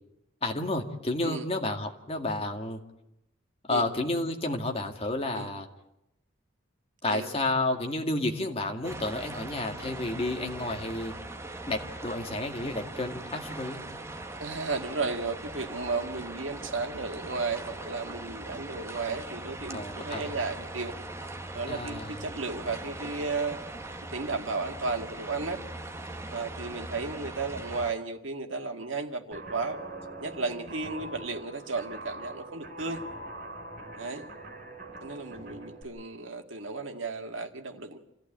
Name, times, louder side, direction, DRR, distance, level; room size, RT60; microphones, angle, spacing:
voice 1, 0.4-2.8 3.7-5.7 7.0-11.1 11.7-13.8 19.7-20.3 21.7-22.2, left 2 dB, 30° left, 3 dB, 2.1 m, -31 dB
sound 1, 8.8-27.9, right 2 dB, 15° right, 1.2 m, -40 dB
voice 2, 14.4-20.9 21.5-23.6 24.1-25.6 26.3-29.8 30.2-33.0 33.9-34.2 35.0-38.0, right 3 dB, 75° right, 5 dB, 2.0 m, -34 dB
Guitar, 29.3-35.8, right 2 dB, 45° right, 5.1 m, -43 dB
28.0 x 15.0 x 8.9 m, 0.87 s
head